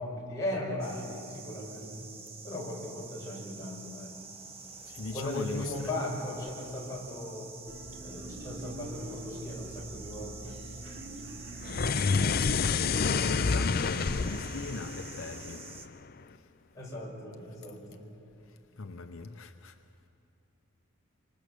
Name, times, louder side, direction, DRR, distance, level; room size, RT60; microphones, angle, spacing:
voice 1, 0.0-2.1 2.4-4.2 5.1-7.5 8.0-10.6 16.7-18.0, left 1 dB, 15° left, 5.9 m, -37 dB
sound 1, 0.8-15.9, right 4 dB, 25° right, 1.3 m, -48 dB
voice 2, 4.8-5.9 11.5-11.6 12.5-15.9 16.3-16.5 18.4-19.8, left 3 dB, 70° left, 0.8 m, -40 dB
sound 2, 7.7-13.5, right 1 dB, 60° right, 2.8 m, -45 dB
sound 3, 11.6-16.0, left 5 dB, 45° left, 0.5 m, -29 dB
27.0 x 26.0 x 6.9 m
head